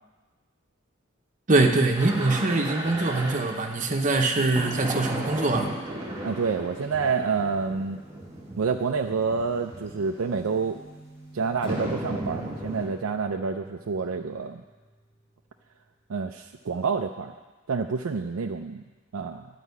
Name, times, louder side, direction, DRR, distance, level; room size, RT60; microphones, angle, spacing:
voice 1, 1.5-5.7, right 2 dB, 35° right, 3 dB, 0.9 m, -23 dB
sound 1, 2.0-12.9, right 1 dB, 15° right, 1.8 m, -36 dB
voice 2, 6.2-8.0 8.6-10.8 11.3-14.6 16.1-17.3 17.7-18.8 19.1-19.5, right 5 dB, 80° right, 3 dB, 0.5 m, -28 dB
Acoustic guitar / Strum, 11.6-14.9, equal, 20° left, 1.0 m, -43 dB
11.0 x 5.0 x 8.3 m, 1.3 s
head